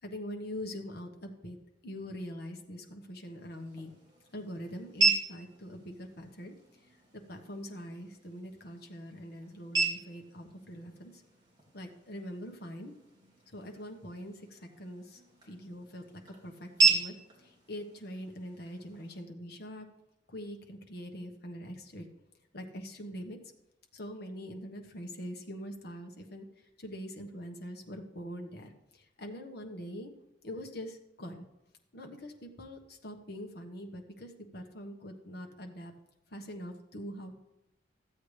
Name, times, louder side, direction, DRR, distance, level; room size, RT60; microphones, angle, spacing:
voice 1, 0.0-1.6 1.8-3.9 4.3-7.0 7.3-11.2 11.7-12.9 13.5-19.9 20.3-22.1 22.5-23.4 23.9-30.1 30.4-31.4 31.9-35.9 36.3-37.4, equal, 55° left, 3 dB, 1.3 m, -43 dB
sound 1, 3.2-19.2, right 3 dB, 25° right, 2.2 m, -35 dB
14.0 x 8.0 x 3.3 m, 0.90 s
head